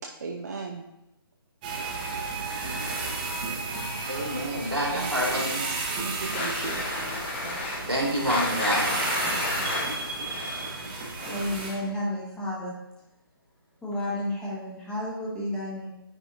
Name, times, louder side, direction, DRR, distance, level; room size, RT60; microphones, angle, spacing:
voice 1, 0.2-0.8 4.9-5.6 6.0-6.8, right 4 dB, 45° right, 0 dB, 0.5 m, -36 dB
sound 1, 1.6-11.7, right 3 dB, 20° right, 0.9 m, -33 dB
voice 2, 4.1-5.7 7.9-8.9, equal, 90° right, -4 dB, 2.2 m, -27 dB
sound 2, 6.3-11.9, left 2 dB, 30° left, 1.0 m, -32 dB
voice 3, 11.3-12.8 13.8-15.9, left 1 dB, 5° left, -6 dB, 1.0 m, -31 dB
9.8 x 3.9 x 2.5 m, 0.93 s
figure-of-eight pair, 140°, 13 cm